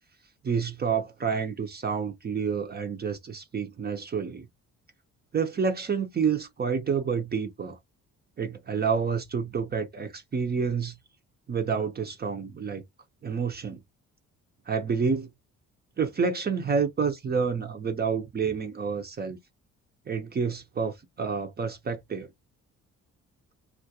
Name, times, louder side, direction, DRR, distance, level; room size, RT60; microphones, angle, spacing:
voice 1, 0.4-4.5 5.3-7.8 8.4-11.0 11.5-12.8 13.2-13.8 14.7-15.3 16.0-19.4 20.1-22.3, right 6 dB, 30° right, 0.6 m, -29 dB
2.3 x 2.1 x 2.6 m
cardioid pair, 90°, 30 cm